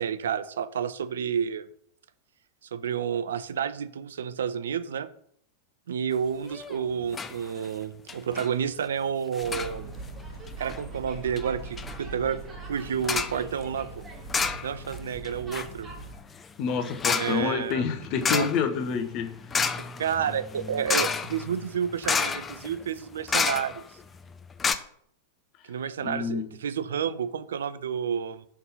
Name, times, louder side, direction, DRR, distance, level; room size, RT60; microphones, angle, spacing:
voice 1, 0.0-1.7 2.7-5.1 5.9-9.9 10.6-12.4 12.7-14.0 14.6-15.9 17.1-17.9 18.3-18.5 20.0-23.8 25.7-28.5, right 8 dB, 65° right, 0.3 m, -30 dB
sound 1, 6.5-6.8 7.1-7.4 7.6-7.7 8.1-8.5 9.3-9.7 10.5-10.8 11.4-11.5 11.8-12.0 13.0-13.4 14.3-15.0 15.2-24.0 24.3-24.4 24.6-24.7, left 5 dB, 20° left, 0.4 m, -30 dB
sound 2, 9.4-16.2, right 3 dB, 15° right, 1.8 m, -41 dB
voice 2, 16.6-19.3 26.0-26.5, left 6 dB, 40° left, 0.8 m, -28 dB
5.7 x 3.7 x 5.3 m
figure-of-eight pair, 90°, 0 cm